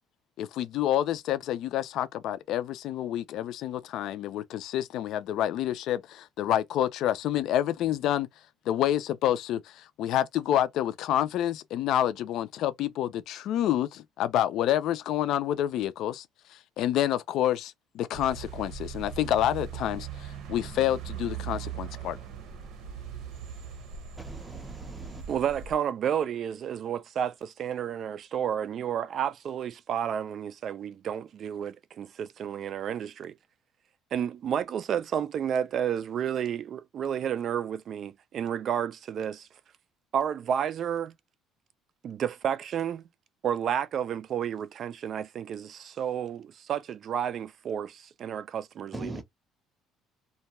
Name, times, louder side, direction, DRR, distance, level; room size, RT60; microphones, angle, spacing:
voice 1, 0.4-8.3 8.7-16.2 16.8-22.2, left 12 dB, 65° left, 0.4 m, -28 dB
sound 1, 18.1-25.7, right 8 dB, 65° right, 0.8 m, -40 dB
voice 2, 24.2-25.2 48.9-49.2, right 1 dB, 10° right, 0.7 m, -40 dB
voice 3, 25.3-33.4 34.1-39.5 40.1-41.1 42.0-43.0 43.4-49.1, right 9 dB, 45° right, 0.3 m, -31 dB
2.5 x 2.2 x 2.9 m
cardioid pair, 130°, 0 cm